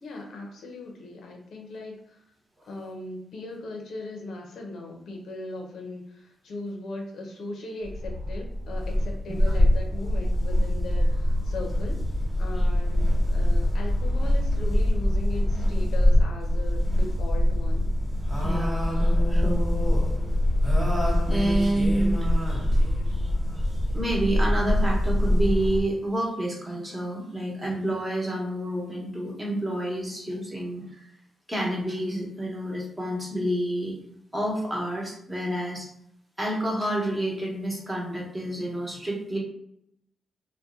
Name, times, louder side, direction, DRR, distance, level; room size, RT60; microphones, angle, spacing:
voice 1, 0.0-2.2 2.6-12.0 12.4-17.9, left 2 dB, 80° left, 1 dB, 0.7 m, -38 dB
sound 1, 7.8-25.8, left 1 dB, 10° left, 1.1 m, -23 dB
voice 2, 18.4-20.1 21.3-22.7 23.1-31.1 31.5-33.9 34.3-35.9 36.4-39.4, right 1 dB, 15° right, -2 dB, 1.0 m, -29 dB
2.7 x 2.2 x 3.6 m, 0.75 s
cardioid pair, 115°, 0 cm